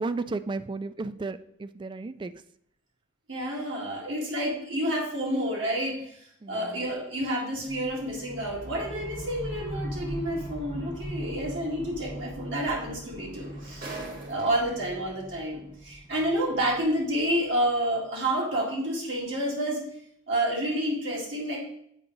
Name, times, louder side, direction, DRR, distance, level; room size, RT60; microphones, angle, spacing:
voice 1, 0.0-2.3 6.4-6.8, right 3 dB, 25° right, 14 dB, 0.3 m, -33 dB
voice 2, 3.3-14.0 14.3-19.8 20.3-21.6, right 1 dB, 75° right, -4 dB, 2.0 m, -29 dB
sound 1, 7.7-17.7, equal, 20° left, 0.8 m, -40 dB
sound 2, 10.5-10.6 12.3-12.4 12.6-14.9 15.8-15.9, right 2 dB, 50° right, 1.5 m, -42 dB
8.1 x 4.8 x 3.9 m, 0.70 s
head